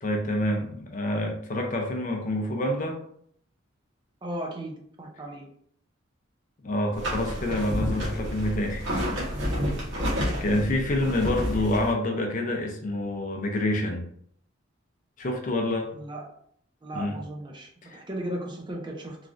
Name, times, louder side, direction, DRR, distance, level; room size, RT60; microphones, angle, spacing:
voice 1, 0.0-3.0 6.6-8.9 10.4-14.1 15.2-15.9 16.9-17.2 17.8-18.0, left 1 dB, 40° left, 3 dB, 0.5 m, -27 dB
voice 2, 4.2-5.5 15.9-16.2 16.8-19.2, right 1 dB, 25° right, 1 dB, 0.5 m, -36 dB
sound 1, 6.9-11.9, equal, 65° right, 1.0 m, -29 dB
3.1 x 2.4 x 2.4 m, 0.65 s
head